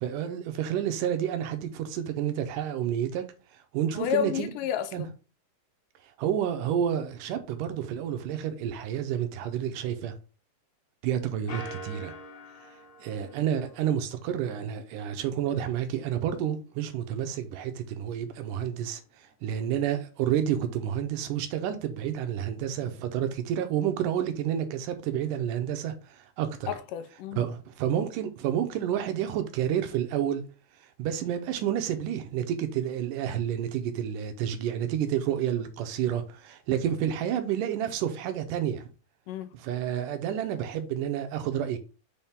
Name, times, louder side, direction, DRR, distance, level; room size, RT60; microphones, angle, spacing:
voice 1, 0.0-3.3 3.5-4.5 4.9-5.0 6.2-10.2 11.0-12.2 13.0-26.7 27.4-30.4 31.0-38.9 39.6-41.8, right 10 dB, 80° right, 2.3 m, -30 dB
voice 2, 3.9-5.1 26.7-27.5 39.3-39.5, left 10 dB, 85° left, 2.2 m, -31 dB
sound 1, 11.5-14.2, equal, 50° left, 0.9 m, -44 dB
6.3 x 4.3 x 3.6 m
omnidirectional pair, 3.9 m